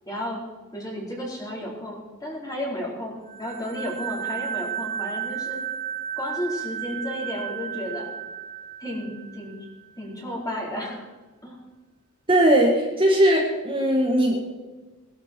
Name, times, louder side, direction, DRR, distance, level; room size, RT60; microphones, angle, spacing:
voice 1, 0.1-0.4 0.7-5.6 6.2-8.1 8.8-9.6 10.0-11.1 11.4-11.6, equal, 20° left, -3 dB, 4.6 m, -33 dB
sound 1, 3.3-9.7, right 9 dB, 70° right, 4.2 m, -33 dB
voice 2, 12.3-14.4, right 1 dB, 25° right, -1 dB, 2.0 m, -19 dB
20.0 x 12.5 x 4.6 m, 1.3 s
head